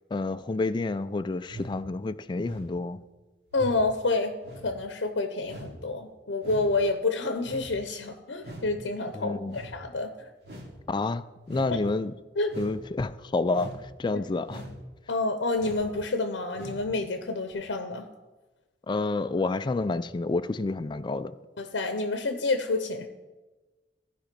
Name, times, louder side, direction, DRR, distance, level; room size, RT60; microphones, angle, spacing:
voice 1, 0.1-3.0 9.2-9.6 10.9-12.1 12.6-13.7 14.0-14.6 18.9-21.3, left 3 dB, 25° left, 0.3 m, -29 dB
sound 1, 1.4-1.8 2.4-2.7 3.5-3.8 4.4-4.7 5.4-5.7 6.4-6.7 7.4-7.7 8.4-8.7 9.5-9.7 10.4-10.8 11.4-11.7 12.5-12.8 13.5-13.8 14.4-14.8 15.6-15.9 16.5-16.8 17.5-17.6, right 1 dB, 65° right, 2.7 m, -42 dB
voice 2, 3.5-4.3 4.6-10.3 12.4-12.5 14.1-14.2 15.1-18.1 21.6-23.1, left 3 dB, 85° left, 0.7 m, -28 dB
15.0 x 5.1 x 5.2 m
head